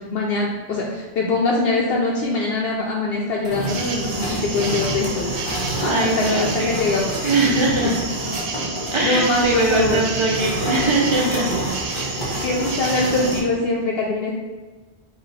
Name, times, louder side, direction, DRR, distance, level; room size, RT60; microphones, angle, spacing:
voice 1, 0.0-7.3 9.0-10.0 12.4-14.3, left 3 dB, 70° left, -2 dB, 0.8 m, -23 dB
sound 1, 3.4-13.4, right 1 dB, 30° left, 0.8 m, -28 dB
sound 2, 3.7-13.4, right 3 dB, 90° right, 1.0 m, -31 dB
voice 2, 5.8-6.8 7.2-8.0 8.9-11.5, right 2 dB, 30° right, -3 dB, 0.7 m, -21 dB
4.1 x 2.4 x 4.0 m, 1.3 s
omnidirectional pair, 1.1 m